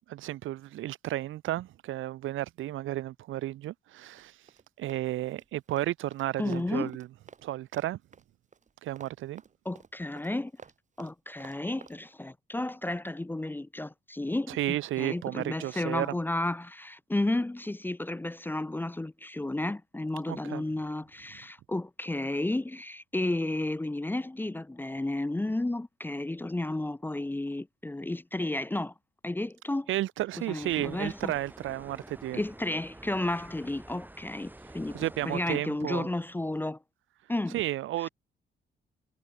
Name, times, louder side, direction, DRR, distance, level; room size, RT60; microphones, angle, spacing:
voice 1, 0.1-4.4 4.8-7.1 7.4-8.0 8.8-9.4 14.5-16.2 20.3-20.6 29.9-32.4 34.9-36.1 37.5-38.1, right 14 dB, 85° right, 2.0 m, -33 dB
Run, 4.1-7.5 7.7-12.0, right 6 dB, 40° right, 1.9 m, -52 dB
voice 2, 6.4-6.9 9.6-10.5 11.0-28.9 29.2-29.9 30.5-31.3 32.3-35.0 35.2-36.8 37.3-37.6 38.0-38.1, left 2 dB, 10° left, 0.6 m, -32 dB
sound 1, 30.6-35.6, right 1 dB, 10° right, 6.3 m, -49 dB
cardioid pair, 90°, 20 cm